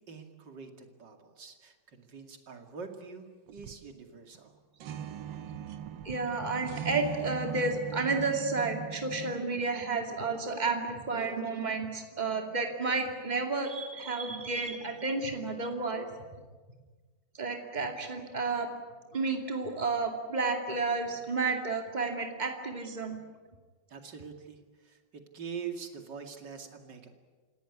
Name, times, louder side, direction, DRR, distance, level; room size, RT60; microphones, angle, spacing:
voice 1, 0.1-3.3 3.5-4.5 23.9-24.6 24.8-27.1, right 6 dB, 70° right, 5 dB, 3.0 m, -44 dB
sound 1, 3.5-3.9 4.4-4.5 4.8-9.4, right 8 dB, 85° right, 1.7 m, -40 dB
voice 2, 6.0-16.1 17.4-18.7 19.1-23.2, right 3 dB, 20° right, 3 dB, 2.6 m, -31 dB
28.0 x 17.5 x 9.7 m, 1.4 s
omnidirectional pair, 2.0 m